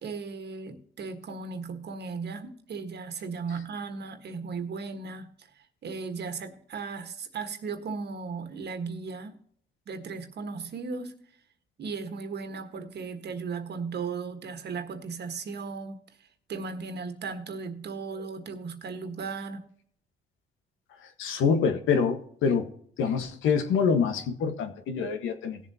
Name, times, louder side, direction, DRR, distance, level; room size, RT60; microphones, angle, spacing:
voice 1, 0.0-9.4 9.9-11.2 11.8-16.0 16.5-19.7, right 4 dB, 55° right, 1.5 m, -36 dB
voice 2, 21.2-22.7 23.0-25.6, left 6 dB, 85° left, 1.5 m, -26 dB
18.5 x 7.4 x 2.9 m
cardioid pair, 90°, 20 cm